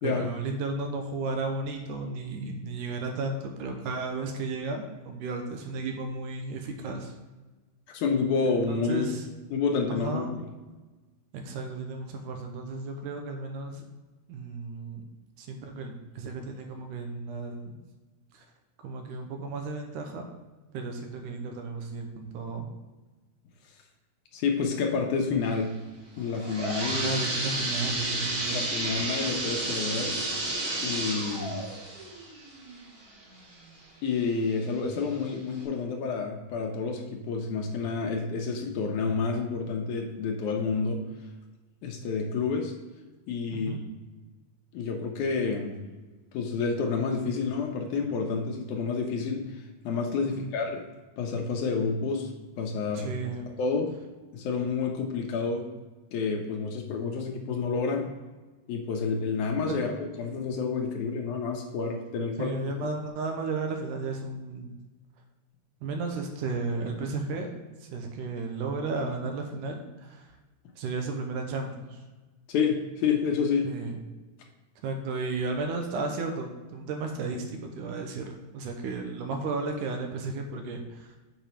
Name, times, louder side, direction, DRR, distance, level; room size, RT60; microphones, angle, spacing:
voice 1, 0.0-7.1 8.7-9.2 9.9-10.3 11.3-13.8 14.3-15.1 15.4-17.8 18.3-18.4 18.8-20.2 20.7-22.7 26.9-28.6 43.5-43.8 50.3-50.5 52.9-53.5 59.7-60.0 62.4-64.8 65.8-67.5 67.8-70.3 70.8-72.0 73.6-74.0 74.8-81.2, right 3 dB, 80° right, 3 dB, 2.3 m, -34 dB
voice 2, 7.9-9.1 9.5-10.5 24.3-25.7 26.2-27.1 28.5-30.2 30.8-31.6 34.0-41.0 41.8-42.7 43.3-43.7 44.7-45.8 46.3-49.4 49.8-50.8 51.2-52.3 52.6-53.1 53.6-53.9 54.3-55.7 56.1-58.1 58.7-59.9 60.2-62.5 72.5-73.7, left 5 dB, 75° left, 2 dB, 2.2 m, -29 dB
sound 1, 26.2-33.8 34.3-34.4 35.1-35.2 35.6-35.7, right 2 dB, 45° right, 2.3 m, -31 dB
6.9 x 5.2 x 4.4 m, 1.2 s
omnidirectional pair, 3.8 m